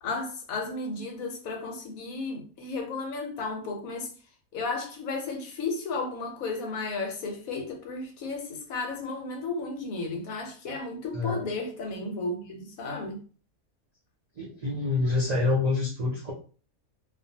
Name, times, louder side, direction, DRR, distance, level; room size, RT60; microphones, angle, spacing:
voice 1, 0.0-4.1 4.5-13.2, left 3 dB, 80° left, 1.1 m, -33 dB
voice 2, 11.1-11.5 14.4-16.3, left 3 dB, 65° right, 0.4 m, -27 dB
2.6 x 2.2 x 2.6 m
omnidirectional pair, 1.5 m